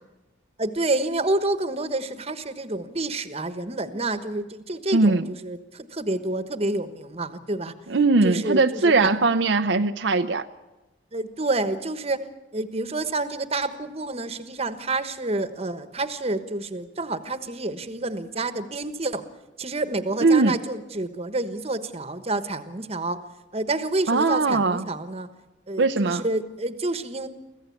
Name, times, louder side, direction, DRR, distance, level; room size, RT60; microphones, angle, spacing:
voice 1, 0.6-7.7 8.2-9.1 11.1-12.2 12.5-19.2 19.6-23.2 23.5-25.3 25.7-27.3, right 2 dB, 35° right, 11 dB, 1.2 m, -28 dB
voice 2, 4.9-5.3 7.9-10.5 20.2-20.6 24.1-24.8 25.8-26.2, right 3 dB, 70° right, 7 dB, 0.7 m, -20 dB
25.0 x 15.5 x 8.5 m, 1.1 s
head